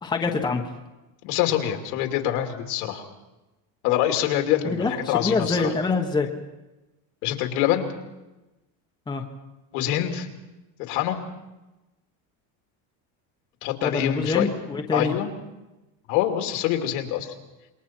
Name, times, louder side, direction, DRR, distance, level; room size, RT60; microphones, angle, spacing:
voice 1, 0.0-0.6 4.6-6.3 9.1-9.2 13.8-15.1, left 4 dB, 10° left, 2 dB, 1.2 m, -25 dB
voice 2, 1.2-3.0 3.8-5.7 7.2-7.9 9.7-10.3 10.8-11.2 13.6-14.5 14.9-15.3 16.1-17.3, left 11 dB, 75° left, 4 dB, 2.9 m, -25 dB
27.5 x 22.5 x 4.5 m, 1.0 s
cardioid pair, 165°, 44 cm